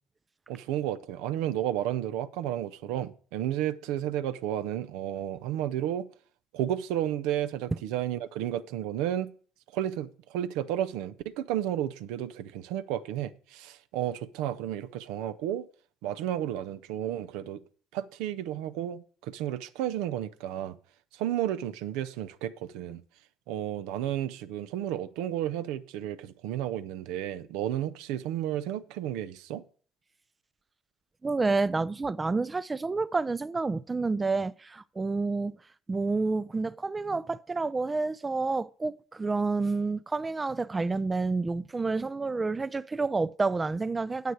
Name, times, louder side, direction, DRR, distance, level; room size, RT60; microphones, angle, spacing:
voice 1, 0.5-6.1 6.5-9.3 9.7-15.7 16.0-17.6 17.9-20.8 21.1-23.0 23.5-29.6, right 11 dB, 80° right, 0.6 m, -32 dB
voice 2, 31.2-35.5 35.9-44.3, right 3 dB, 25° right, 0.4 m, -29 dB
9.2 x 8.0 x 4.7 m
supercardioid pair, 75°, 0 cm